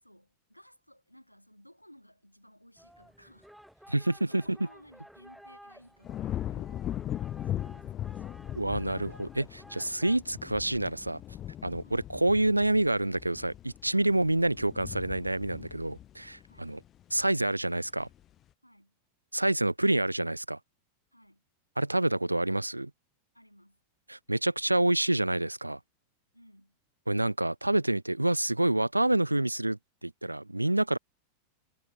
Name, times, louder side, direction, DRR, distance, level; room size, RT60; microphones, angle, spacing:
voice 1, 0.0-3.9 4.2-6.9 7.4-8.4 11.8-12.0 16.4-16.8 18.6-19.0 21.1-21.4 23.3-23.8 26.3-26.8, equal, 90° left, 3.3 m, -58 dB
sound 1, 2.8-10.2, equal, ahead, 0.7 m, -54 dB
voice 2, 3.9-4.6 8.5-11.2 11.6-16.8 17.1-18.1 19.3-20.6 21.8-22.9 24.1-25.8 27.1-31.0, right 1 dB, 85° right, 0.3 m, -28 dB
sound 2, 6.0-17.3 17.8-18.2, left 11 dB, 30° left, 0.4 m, -39 dB
figure-of-eight pair, 90°, 0 cm